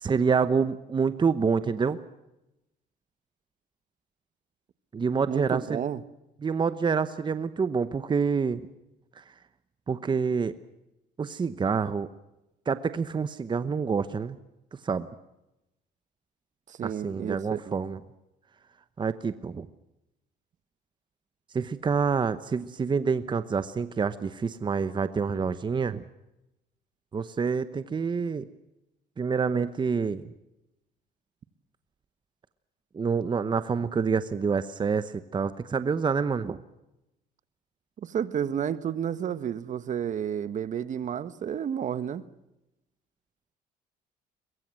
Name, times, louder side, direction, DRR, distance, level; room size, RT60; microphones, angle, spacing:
voice 1, 0.0-2.0 4.9-5.8 6.4-8.7 9.2-9.3 9.9-10.6 11.2-12.1 12.7-14.4 14.8-15.1 16.8-18.0 19.0-19.7 21.5-26.0 27.1-28.5 29.2-30.2 32.9-36.6, right 5 dB, 25° right, 13 dB, 1.0 m, -27 dB
voice 2, 5.3-6.0 16.7-17.7 38.0-42.2, right 8 dB, 45° right, 14 dB, 1.3 m, -31 dB
22.5 x 22.0 x 7.6 m, 0.91 s
cardioid pair, 110°, 17 cm